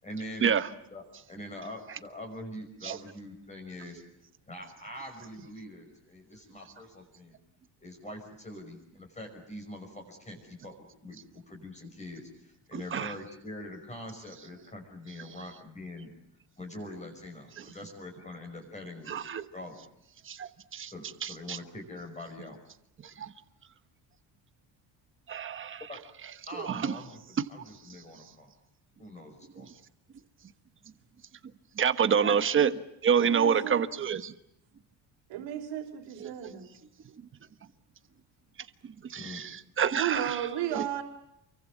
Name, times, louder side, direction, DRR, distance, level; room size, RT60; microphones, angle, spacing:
voice 1, 0.0-0.6 0.9-1.0 1.3-4.0 4.5-7.4 7.8-16.1 16.6-19.2 19.5-19.8 20.9-22.6 25.9-26.0 26.5-28.5 29.0-29.7 39.2-39.4, left 1 dB, 15° left, 3 dB, 5.6 m, -43 dB
voice 2, 12.7-13.1 17.6-17.7 19.1-19.5 20.2-20.9 21.2-21.6 23.0-23.3 25.3-25.8 26.5-27.0 29.6-29.7 31.8-34.3 36.2-36.5 38.8-40.8, right 7 dB, 25° right, 11 dB, 1.2 m, -28 dB
voice 3, 33.2-33.9 35.3-36.7 40.0-41.0, right 10 dB, 75° right, -3 dB, 4.4 m, -34 dB
29.0 x 23.5 x 7.3 m, 0.78 s
cardioid pair, 170°, 45 cm